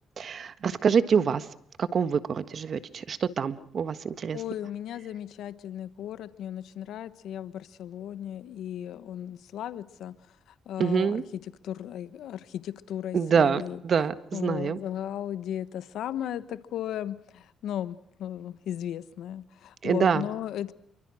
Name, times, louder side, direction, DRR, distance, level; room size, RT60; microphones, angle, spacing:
voice 1, 0.2-1.5 1.8-4.4 10.8-11.2 13.1-14.8 19.8-20.3, right 6 dB, 50° right, 13 dB, 1.5 m, -26 dB
voice 2, 4.3-10.1 10.7-13.8 14.3-20.7, left 10 dB, 80° left, 14 dB, 1.1 m, -36 dB
28.5 x 24.0 x 6.3 m, 0.67 s
cardioid pair, 90°, 0 cm